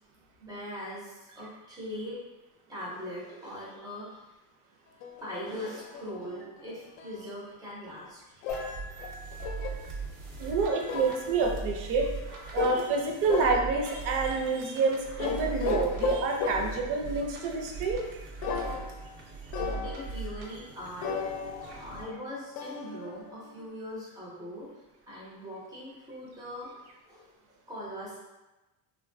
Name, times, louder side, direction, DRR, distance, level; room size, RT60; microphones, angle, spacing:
voice 1, 0.4-2.2 2.7-4.2 5.1-8.2 8.5-8.7 10.6-10.8 12.0-12.4 14.8-15.5 19.7-21.1 21.6-24.7 25.1-28.2, equal, 10° right, -8 dB, 0.4 m, -41 dB
sound 1, 5.0-7.2 8.4-9.9 10.9-11.3 12.6-13.0 13.3-14.0 15.2-16.9 18.4-19.2 19.5-20.2 21.0-23.7, left 6 dB, 75° left, 0.5 m, -35 dB
sound 2, 8.5-22.0, right 4 dB, 80° right, 0.9 m, -40 dB
voice 2, 10.4-12.1 12.5-18.0 21.7-21.8, right 4 dB, 60° right, 1 dB, 0.6 m, -28 dB
3.2 x 2.2 x 2.5 m, 1.1 s
cardioid pair, 175°, 48 cm